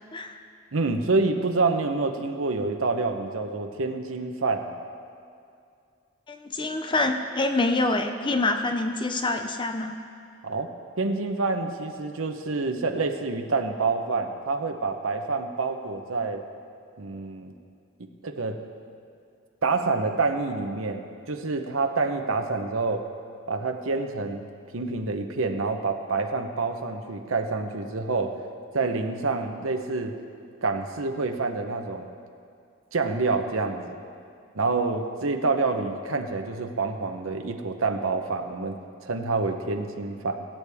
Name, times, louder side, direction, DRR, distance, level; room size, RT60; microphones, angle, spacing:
voice 1, 0.7-4.7 10.4-16.4 17.0-17.5 18.0-18.6 19.6-23.0 23.5-24.5 24.7-28.4 28.7-30.1 30.6-32.1 32.9-34.0 34.5-40.5, right 3 dB, 75° right, 5 dB, 0.9 m, -27 dB
voice 2, 6.3-10.0, left 2 dB, 25° left, 6 dB, 0.5 m, -26 dB
20.5 x 8.5 x 3.5 m, 2.4 s
head